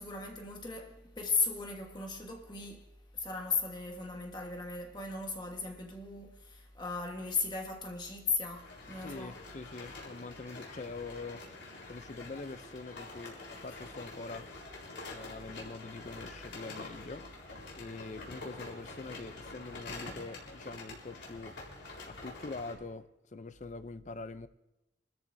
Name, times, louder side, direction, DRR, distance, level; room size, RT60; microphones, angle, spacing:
voice 1, 0.0-2.9 3.1-9.4, left 4 dB, 25° left, 1.4 m, -36 dB
sound 1, 8.5-22.7, left 2 dB, 85° left, 3.9 m, -46 dB
voice 2, 9.0-11.4 11.9-14.5 15.1-17.3 17.8-21.6 22.0-24.5, left 3 dB, 40° left, 0.5 m, -44 dB
25.5 x 13.5 x 2.7 m
head